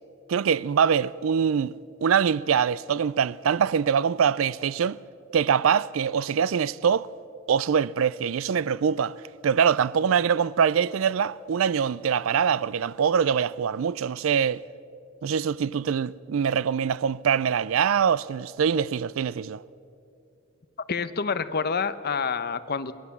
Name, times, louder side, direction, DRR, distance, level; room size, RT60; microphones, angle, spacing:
voice 1, 0.3-1.7 2.0-5.0 5.3-7.1 7.5-9.2 9.4-14.6 15.2-19.6, right 7 dB, 75° right, 0.4 m, -23 dB
voice 2, 20.9-22.9, left 5 dB, 50° left, 0.8 m, -27 dB
23.5 x 20.0 x 7.1 m
head